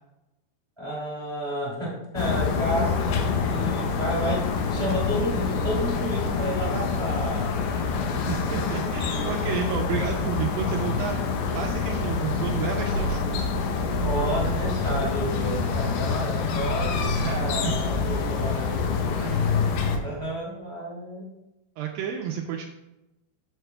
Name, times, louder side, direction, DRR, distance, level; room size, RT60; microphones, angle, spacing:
voice 1, 0.8-7.6 14.0-19.7 20.0-21.3, equal, 15° right, -6 dB, 0.8 m, -31 dB
sound 1, 2.2-20.0, left 4 dB, 80° left, 2.7 m, -26 dB
voice 2, 8.3-13.5 17.2-17.8 19.2-19.7 21.8-22.7, right 8 dB, 90° right, 1 dB, 2.1 m, -31 dB
14.5 x 4.9 x 2.3 m, 0.97 s
omnidirectional pair, 4.7 m